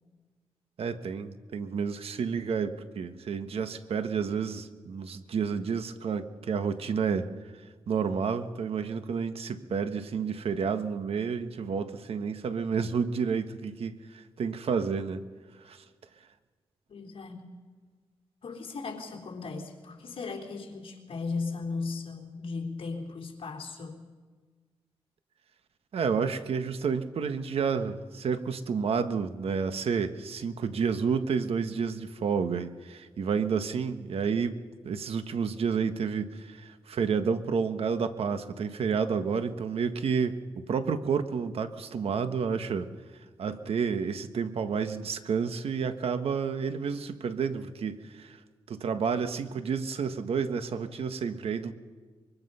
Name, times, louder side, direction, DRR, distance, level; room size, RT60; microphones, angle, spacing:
voice 1, 0.8-7.3 7.9-15.2 15.6-15.8 25.9-34.6 34.8-40.4 40.7-42.9 43.4-48.4 48.7-51.7, right 6 dB, 75° right, 9 dB, 1.5 m, -30 dB
voice 2, 16.9-17.5 18.4-24.0, left 4 dB, 65° left, 1 dB, 3.7 m, -37 dB
24.5 x 23.5 x 5.7 m, 1.4 s
wide cardioid pair, 100°, 10 cm